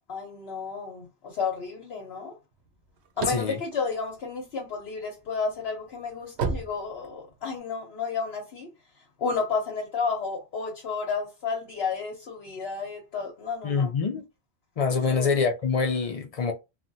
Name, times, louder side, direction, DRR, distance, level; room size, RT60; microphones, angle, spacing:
voice 1, 0.1-2.3 3.2-8.7 9.2-13.9 15.1-15.3, left 5 dB, 70° left, 1.0 m, -32 dB
sound 1, 2.7-4.9 5.3-7.6, right 5 dB, 80° right, 0.9 m, -33 dB
voice 2, 3.3-3.6 13.6-14.3 14.8-16.5, left 5 dB, 50° left, 0.4 m, -25 dB
3.2 x 2.2 x 2.6 m
omnidirectional pair, 1.1 m